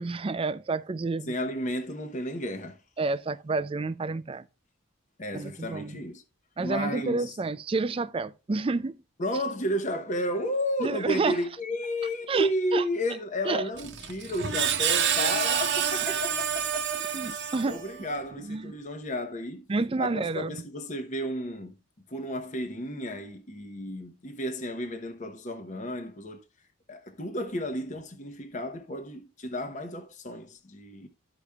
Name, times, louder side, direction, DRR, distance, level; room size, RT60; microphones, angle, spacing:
voice 1, 0.0-1.3 3.0-4.5 5.3-6.0 6.6-9.0 10.8-11.4 12.3-12.8 13.5-13.6 17.0-17.8 18.4-18.7 19.7-20.6, right 3 dB, 25° right, 0.3 m, -29 dB
voice 2, 1.3-2.8 5.2-6.2 6.6-7.4 9.2-17.0 17.4-19.7 20.0-21.8 22.1-26.4 26.9-31.1, equal, 35° left, 0.9 m, -32 dB
Screech, 13.8-18.1, right 8 dB, 50° right, 0.9 m, -28 dB
13.0 x 5.0 x 2.3 m
head